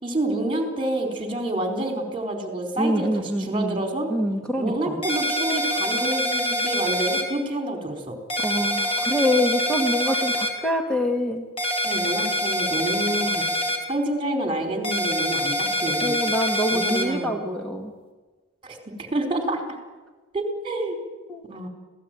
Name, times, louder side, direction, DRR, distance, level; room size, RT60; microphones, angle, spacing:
voice 1, 0.0-4.1 4.6-8.2 11.8-13.4 13.9-16.2 16.7-17.4 18.6-19.6 20.3-21.0 21.5-21.7, right 1 dB, 25° right, 4 dB, 4.3 m, -28 dB
voice 2, 2.8-3.8 4.1-5.0 8.4-11.5 16.0-17.9 21.3-21.4, equal, 5° left, 1 dB, 1.7 m, -25 dB
sound 1, 5.0-7.2 8.3-10.5 11.6-13.8 14.8-17.0, equal, 25° left, 4.9 m, -25 dB
26.0 x 17.5 x 9.2 m, 1.3 s
head